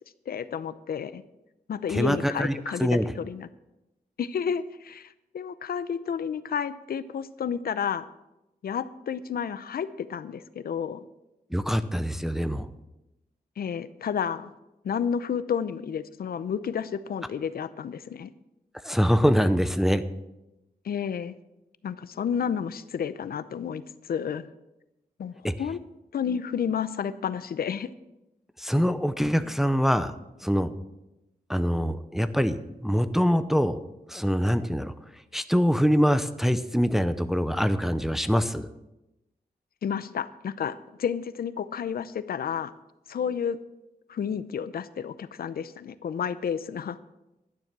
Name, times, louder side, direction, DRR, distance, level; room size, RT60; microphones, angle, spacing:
voice 1, 0.3-1.2 1.7-3.5 4.2-8.1 8.6-11.0 13.6-14.5 14.8-18.3 20.8-21.4 21.8-24.5 25.2-25.8 26.1-27.9 39.8-42.7 43.1-43.6 44.1-47.0, left 7 dB, 70° left, 14 dB, 0.6 m, -31 dB
voice 2, 1.9-2.5 2.8-3.1 11.5-12.7 18.8-20.0 25.4-25.5 28.6-30.1 30.4-30.7 31.5-33.8 34.1-34.9 35.3-38.7, equal, ahead, 10 dB, 0.6 m, -24 dB
12.0 x 9.9 x 6.0 m, 0.93 s
wide cardioid pair, 155°, 16 cm